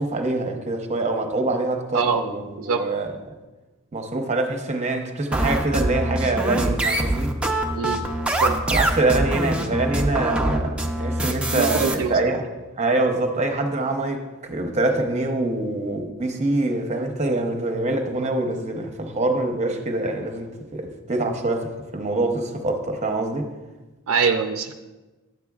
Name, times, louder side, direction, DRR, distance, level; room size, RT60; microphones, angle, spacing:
voice 1, 0.0-3.2 3.9-7.3 8.7-12.5 12.8-23.5, right 2 dB, 35° right, 0.8 m, -25 dB
sound 1, 5.3-11.9, right 1 dB, 5° right, 0.5 m, -24 dB
voice 2, 11.5-12.2 24.1-24.7, right 5 dB, 90° right, 0.4 m, -23 dB
10.5 x 8.0 x 2.4 m
head